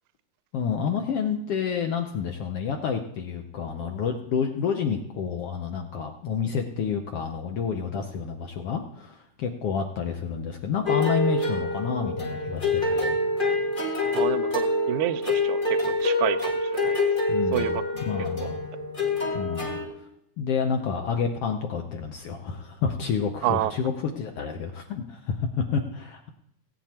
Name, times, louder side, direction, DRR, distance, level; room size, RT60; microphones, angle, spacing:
voice 1, 0.5-13.2 17.3-17.8 18.1-18.6 19.3-19.8 20.4-26.3, left 6 dB, 70° left, 4 dB, 1.4 m, -29 dB
sound 1, 10.9-19.8, left 2 dB, 20° left, 1.4 m, -26 dB
voice 2, 14.1-17.0 17.5-17.8 23.4-23.7, right 15 dB, 80° right, 15 dB, 1.9 m, -29 dB
17.5 x 9.7 x 2.9 m, 0.77 s
omnidirectional pair, 3.7 m